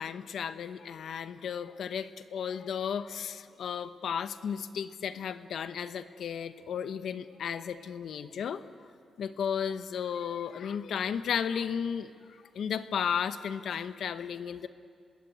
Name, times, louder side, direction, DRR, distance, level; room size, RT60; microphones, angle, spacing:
voice 1, 0.0-8.6 9.2-12.1 12.5-14.7, left 7 dB, 75° left, 11 dB, 0.9 m, -34 dB
25.5 x 21.5 x 8.5 m, 2.3 s
cardioid pair, 90°, 0 cm